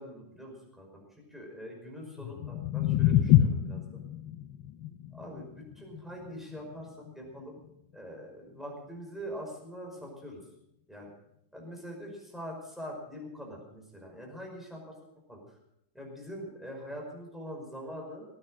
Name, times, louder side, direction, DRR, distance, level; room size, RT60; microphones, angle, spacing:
voice 1, 0.0-4.0 5.1-6.9 7.1-7.6 7.9-10.4 10.9-11.1 11.5-14.9 15.3-15.4 15.9-18.3, equal, ahead, -1 dB, 5.2 m, -43 dB
sound 1, 2.1-8.3, left 12 dB, 75° left, 1.4 m, -28 dB
18.5 x 9.8 x 6.4 m, 0.79 s
omnidirectional pair, 2.1 m